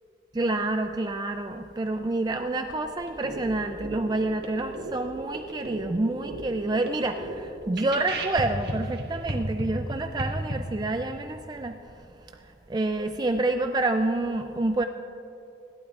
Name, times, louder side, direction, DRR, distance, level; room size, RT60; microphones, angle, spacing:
voice 1, 0.3-11.8 12.7-14.8, right 2 dB, 25° right, 6 dB, 0.3 m, -28 dB
sound 1, 3.1-10.5, right 1 dB, 65° right, 1.6 m, -35 dB
26.5 x 12.0 x 2.4 m, 3.0 s
head